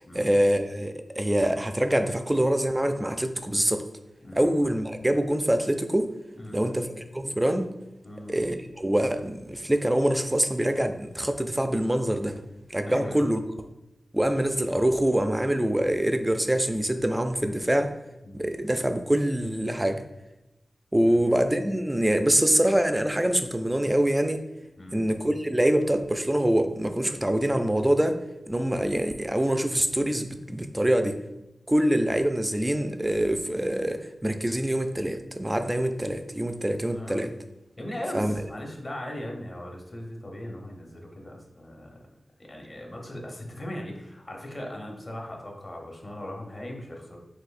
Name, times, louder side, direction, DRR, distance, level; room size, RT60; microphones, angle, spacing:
voice 1, 0.1-3.8 4.3-6.1 6.5-7.7 8.3-12.4 12.7-13.4 14.1-17.9 18.3-20.0 20.9-24.4 24.9-28.2 28.5-31.2 31.7-37.3 38.1-38.3, right 1 dB, 15° right, 8 dB, 0.4 m, -25 dB
voice 2, 6.4-6.8 8.0-8.4 12.9-13.2 18.2-18.5 21.0-21.2 24.8-25.0 36.9-37.2 37.8-42.0 42.4-47.2, left 1 dB, 40° left, 0 dB, 0.9 m, -38 dB
6.3 x 2.6 x 2.5 m, 0.95 s
wide cardioid pair, 80°, 0 cm